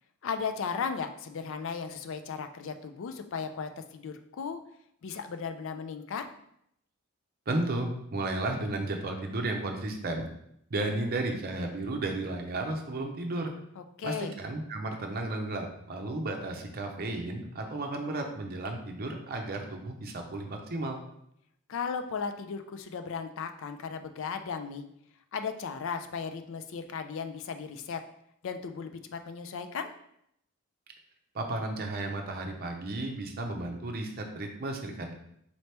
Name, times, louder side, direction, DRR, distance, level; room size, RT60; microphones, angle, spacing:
voice 1, 0.2-4.6 5.0-6.2 13.8-14.3 21.7-24.8 25.3-28.0 28.4-29.9, left 6 dB, 60° left, 8 dB, 0.4 m, -36 dB
voice 2, 7.5-10.3 10.7-13.5 14.0-21.0 31.3-35.1, right 2 dB, 45° right, 3 dB, 0.6 m, -33 dB
4.2 x 2.9 x 3.3 m, 0.74 s
head